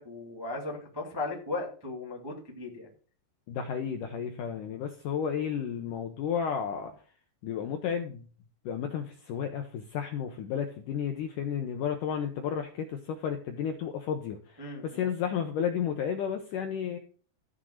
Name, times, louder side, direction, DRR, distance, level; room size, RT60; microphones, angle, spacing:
voice 1, 0.0-2.9 14.6-15.0, left 3 dB, 15° right, -1 dB, 0.9 m, -37 dB
voice 2, 3.5-7.0 7.4-8.2 8.7-17.0, left 8 dB, 75° left, 6 dB, 1.9 m, -32 dB
13.5 x 6.2 x 6.4 m, 0.44 s
omnidirectional pair, 4.7 m